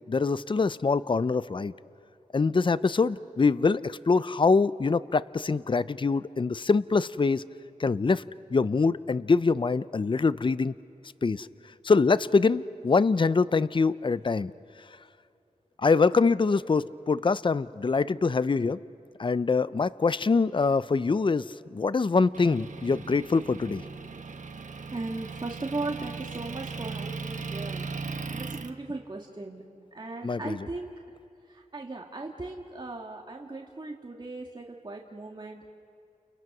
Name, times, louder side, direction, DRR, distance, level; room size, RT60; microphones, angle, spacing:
voice 1, 0.1-1.7 2.3-7.4 7.8-8.2 8.5-10.7 11.2-11.5 11.8-14.5 15.8-18.8 19.2-21.5 21.7-23.8 30.2-30.6, left 4 dB, 40° left, 16 dB, 0.5 m, -24 dB
Motor vehicle (road) / Engine, 22.3-28.7, right 4 dB, 70° right, 1.1 m, -38 dB
voice 2, 24.9-27.9 28.3-29.6 29.9-30.9 31.5-35.7, right 2 dB, 35° right, 0 dB, 1.9 m, -37 dB
29.5 x 29.5 x 6.1 m, 2.5 s
wide cardioid pair, 65°, 14 cm